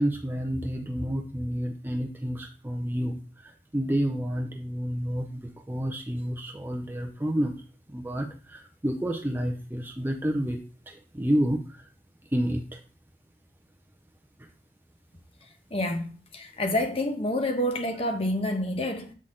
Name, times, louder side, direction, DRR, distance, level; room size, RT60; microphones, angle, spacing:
voice 1, 0.0-7.5 7.9-10.6 10.9-11.9 12.3-12.8, equal, 10° right, 0.5 m, -29 dB
voice 2, 15.7-19.1, left 1 dB, 30° left, 0.9 m, -28 dB
7.4 x 4.0 x 3.7 m
head